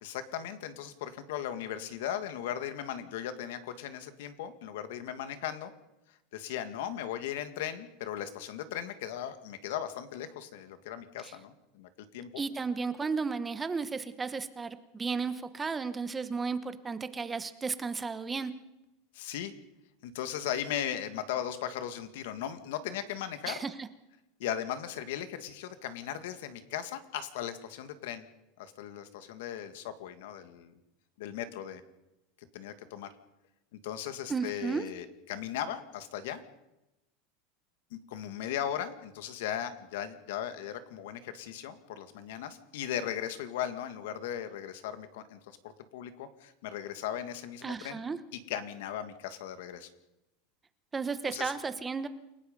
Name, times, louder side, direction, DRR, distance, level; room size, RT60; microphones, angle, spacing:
voice 1, 0.0-5.7 6.3-12.4 19.1-19.5 20.0-23.6 24.4-28.3 28.6-30.7 31.2-31.8 32.5-33.1 33.7-36.4 37.9-45.6 45.9-48.0 48.3-49.9 51.3-51.5, left 10 dB, 75° left, 10 dB, 2.1 m, -37 dB
voice 2, 12.4-18.5 23.5-23.7 34.3-34.9 47.6-48.2 50.9-52.1, right 4 dB, 15° right, 11 dB, 1.0 m, -34 dB
28.5 x 17.5 x 5.4 m, 0.96 s
supercardioid pair, 160°, 0 cm